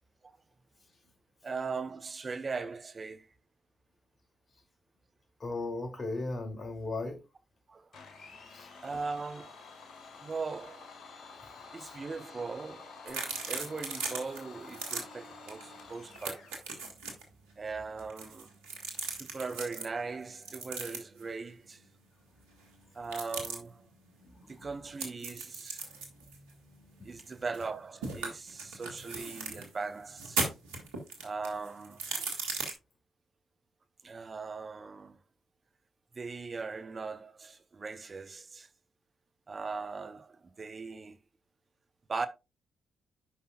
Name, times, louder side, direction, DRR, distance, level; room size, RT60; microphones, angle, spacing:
voice 1, 1.4-3.3 7.7-7.9 8.8-9.5 10.2-10.9 11.7-16.5 17.6-18.5 19.2-21.8 22.9-23.9 24.5-25.8 27.0-30.4 31.2-32.0 34.0-35.2 36.2-38.7 39.5-41.2 42.1-42.3, right 4 dB, 40° right, 0.7 m, -39 dB
voice 2, 5.4-7.2 8.5-8.7 11.8-11.9 24.4-24.7, left 2 dB, 40° left, 2.6 m, -36 dB
Domestic sounds home sounds, 7.9-16.6, left 4 dB, 65° left, 1.8 m, -50 dB
sound 1, 13.1-14.4 14.7-15.0 15.5-15.6 15.9-17.2 18.0-19.9 20.4-21.2 23.0-23.6 25.0-27.7 28.0-29.7 30.1-32.7, right 4 dB, 85° right, 1.5 m, -37 dB
11.5 x 5.4 x 2.3 m
hypercardioid pair, 45°, 0 cm